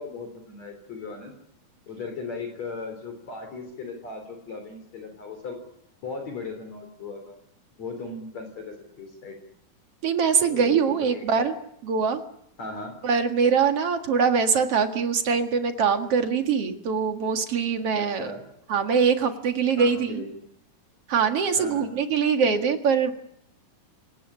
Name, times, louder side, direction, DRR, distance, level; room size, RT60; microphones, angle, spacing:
voice 1, 0.0-1.3 1.9-5.6 6.0-7.4 7.8-9.4 10.5-11.5 12.6-12.9 18.0-18.4 19.7-20.3 21.6-22.0, left 4 dB, 50° left, 5 dB, 4.6 m, -37 dB
voice 2, 10.0-11.5 11.8-12.2 13.0-18.3 18.7-20.2 21.1-23.1, right 6 dB, 50° right, 7 dB, 2.4 m, -23 dB
27.5 x 18.0 x 9.8 m, 0.77 s
omnidirectional pair, 4.3 m